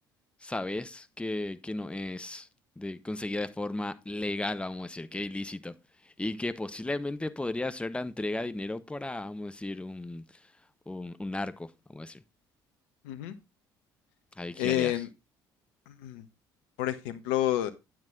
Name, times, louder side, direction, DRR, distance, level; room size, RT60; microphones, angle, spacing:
voice 1, 0.4-2.5 2.8-5.7 6.0-10.2 10.9-12.2 14.4-15.1, left 2 dB, 10° left, 0.9 m, -35 dB
voice 2, 14.6-15.1 16.0-16.2 16.8-17.7, left 13 dB, 75° left, 1.1 m, -29 dB
9.4 x 7.9 x 3.8 m
hypercardioid pair, 55°, 11 cm